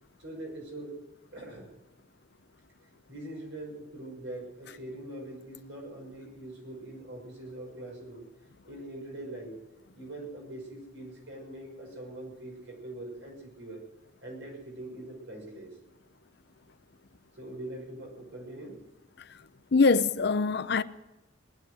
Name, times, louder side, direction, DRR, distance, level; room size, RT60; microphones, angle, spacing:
voice 1, 0.2-1.0 1.3-1.7 3.1-8.2 8.7-9.6 9.9-13.8 14.2-15.8 17.4-18.8, right 1 dB, 75° right, 6.0 m, -42 dB
voice 2, 19.7-20.8, left 4 dB, 60° left, 0.6 m, -23 dB
19.0 x 11.5 x 6.3 m
head